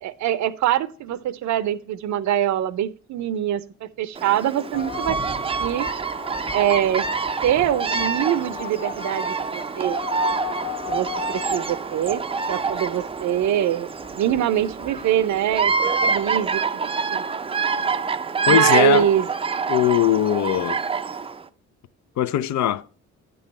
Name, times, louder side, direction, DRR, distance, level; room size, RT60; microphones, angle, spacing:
voice 1, 0.0-5.2 5.6-5.9 6.5-7.0 7.4-10.0 10.9-12.2 12.5-13.9 14.2-15.7 16.0-17.2 18.5-19.3, right 11 dB, 70° right, 0.6 m, -23 dB
Bird vocalization bird call bird song, 4.1-21.4, right 5 dB, 20° right, 0.4 m, -26 dB
sound 1, 4.7-16.6, left 8 dB, 30° left, 1.1 m, -37 dB
voice 2, 18.5-19.1 19.7-20.8 22.2-22.8, left 11 dB, 70° left, 0.5 m, -20 dB
9.3 x 5.5 x 4.1 m
cardioid pair, 90°, 30 cm